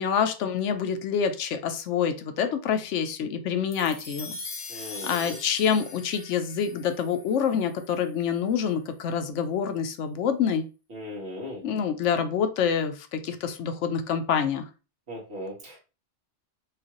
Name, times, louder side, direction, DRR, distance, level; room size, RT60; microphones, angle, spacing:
voice 1, 0.0-4.4 5.0-10.7 11.6-14.6, left 7 dB, 80° left, 8 dB, 0.9 m, -27 dB
sound 1, 3.7-8.2, left 3 dB, 40° left, 0.6 m, -41 dB
voice 2, 4.7-5.4 10.9-11.6 15.1-15.8, left 1 dB, 60° right, -2 dB, 1.6 m, -38 dB
4.9 x 2.4 x 2.9 m, 0.32 s
omnidirectional pair, 1.2 m